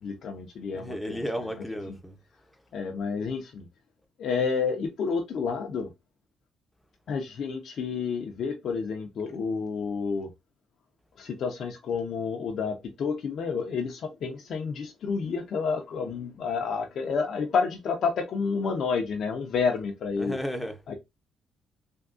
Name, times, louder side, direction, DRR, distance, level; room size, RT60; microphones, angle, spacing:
voice 1, 0.0-1.5 1.9-2.0 2.7-3.7 4.2-5.9 7.1-10.3 11.2-20.4 20.9-21.0, left 5 dB, 65° left, 0.6 m, -30 dB
voice 2, 0.7-2.2 20.2-20.9, equal, 5° left, 0.7 m, -34 dB
3.5 x 2.2 x 2.4 m
cardioid pair, 90°, 0 cm